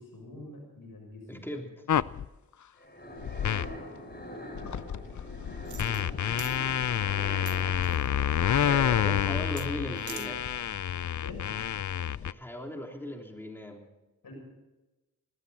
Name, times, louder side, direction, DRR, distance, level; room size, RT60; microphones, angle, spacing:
voice 1, 0.0-1.5 4.6-5.2 11.2-11.4 14.2-14.3, left 2 dB, 85° left, 1 dB, 7.0 m, -47 dB
voice 2, 1.3-1.9 8.6-10.4 12.2-13.9, left 1 dB, 5° left, 2 dB, 3.3 m, -38 dB
sound 1, 1.9-2.3 3.2-3.8 4.2-4.3 4.6-12.3, left 9 dB, 60° left, 0.5 m, -28 dB
sound 2, 2.8-10.8, equal, 30° left, 5.2 m, -44 dB
sound 3, 5.6-6.1 6.4-6.6 7.5-8.1 9.6-9.7 10.0-10.3 10.7-10.8, right 7 dB, 60° right, 0.8 m, -44 dB
19.5 x 16.5 x 4.2 m, 1.0 s
cardioid pair, 40°, 34 cm